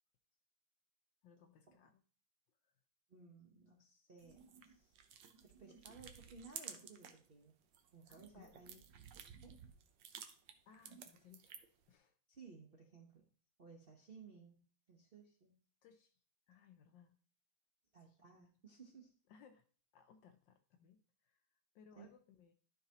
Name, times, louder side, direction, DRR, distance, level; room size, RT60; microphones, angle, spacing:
voice 1, 1.2-2.0 2.6-2.7 8.1-8.6 10.7-11.5 11.9-12.2 15.8-16.2 16.5-17.2 18.0-18.5 19.3-19.7 19.9-22.5, left 7 dB, 70° left, 7 dB, 1.1 m, -65 dB
voice 2, 3.1-5.0 5.4-7.5 7.9-9.0 9.4-9.6 12.3-13.2 13.6-14.6 14.9-15.6 17.9-19.1 21.9-22.1, right 4 dB, 50° right, -1 dB, 0.7 m, -59 dB
sound 1, 4.2-7.3 7.6-11.8, right 8 dB, 65° right, 1.3 m, -54 dB
12.5 x 4.8 x 2.8 m, 0.42 s
omnidirectional pair, 2.4 m